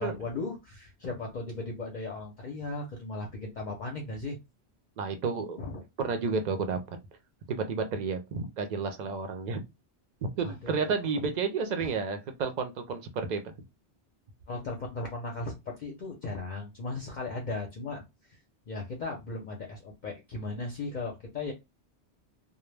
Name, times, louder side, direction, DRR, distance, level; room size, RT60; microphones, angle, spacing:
voice 1, 0.0-4.4 5.6-5.8 10.4-10.9 11.8-11.9 14.5-18.0 18.3-18.4 18.7-21.5, left 3 dB, 55° left, 0.6 m, -37 dB
voice 2, 5.0-5.6 6.0-7.0 7.5-9.6 10.2-13.5, right 5 dB, 60° right, 0.5 m, -31 dB
2.1 x 2.1 x 3.2 m
omnidirectional pair, 1.1 m